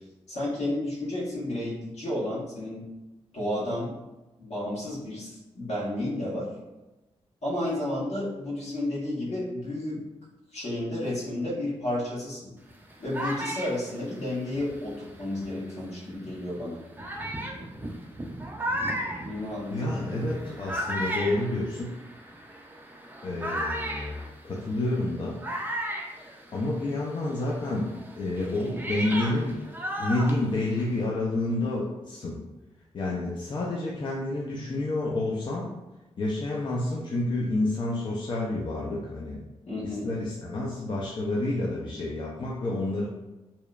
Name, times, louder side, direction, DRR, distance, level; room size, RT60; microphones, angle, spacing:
voice 1, 0.3-2.8 3.3-3.9 4.4-6.5 7.4-10.0 10.5-12.5 13.0-16.8 19.2-20.3 39.7-40.1, left 1 dB, 70° left, -7 dB, 1.2 m, -32 dB
sound 1, 12.7-15.7 16.4-16.5 17.0-27.0 27.3-31.0, right 1 dB, 15° right, 0.4 m, -35 dB
voice 2, 19.7-21.9 23.2-25.4 26.5-29.6 30.0-32.4 32.9-35.7 36.2-39.4 39.8-43.1, left 2 dB, 45° left, -4 dB, 0.5 m, -29 dB
2.8 x 2.0 x 2.3 m, 1.0 s
cardioid pair, 70°, 12 cm